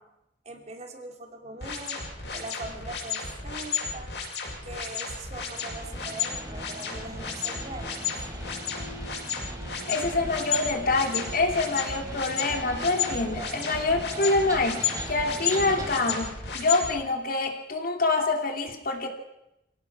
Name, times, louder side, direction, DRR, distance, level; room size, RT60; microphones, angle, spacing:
voice 1, 0.4-4.1 4.6-8.3, right 2 dB, 40° right, 4 dB, 2.8 m, -41 dB
sound 1, 1.6-16.9, left 6 dB, 75° left, 6.7 m, -32 dB
sound 2, 5.5-16.2, right 1 dB, 20° right, 2.9 m, -40 dB
voice 2, 9.9-19.1, left 3 dB, 55° left, 4 dB, 2.9 m, -26 dB
26.5 x 17.5 x 6.0 m, 0.88 s
head